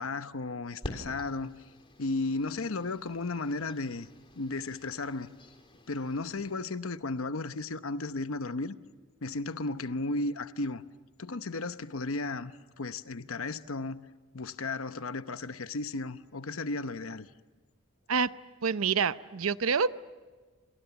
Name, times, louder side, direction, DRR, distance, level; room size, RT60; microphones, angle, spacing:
voice 1, 0.0-1.5 2.0-4.1 4.4-5.3 5.9-8.8 9.2-10.8 11.2-14.0 14.3-17.3, left 3 dB, 80° left, 0.9 m, -34 dB
sound 1, 0.8-6.5, left 1 dB, 25° left, 3.5 m, -48 dB
voice 2, 18.6-19.9, right 5 dB, 85° right, 0.7 m, -27 dB
29.5 x 27.0 x 7.1 m
head